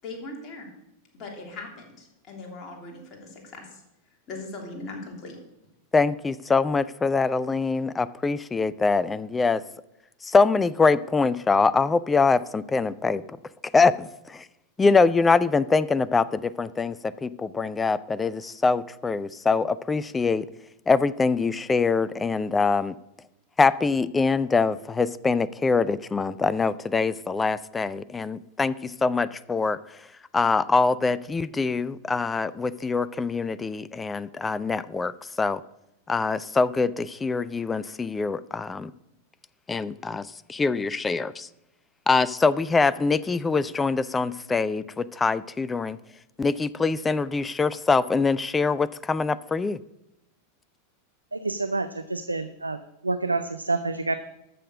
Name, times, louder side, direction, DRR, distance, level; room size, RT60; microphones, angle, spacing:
voice 1, 0.0-0.7 1.1-3.8 4.3-5.4, left 2 dB, 30° left, 0 dB, 3.2 m, -39 dB
voice 2, 5.9-9.6 10.2-13.4 13.7-14.5 14.8-20.5 20.9-22.9 23.6-29.8 30.3-35.1 35.4-35.6 36.1-38.9 39.7-41.5 42.1-46.0 46.4-49.8, left 4 dB, 15° left, 18 dB, 0.5 m, -24 dB
voice 3, 51.3-52.8 53.0-54.1, right 3 dB, 80° right, 10 dB, 0.5 m, -28 dB
13.5 x 6.6 x 6.3 m, 0.88 s
figure-of-eight pair, 90°, 0 cm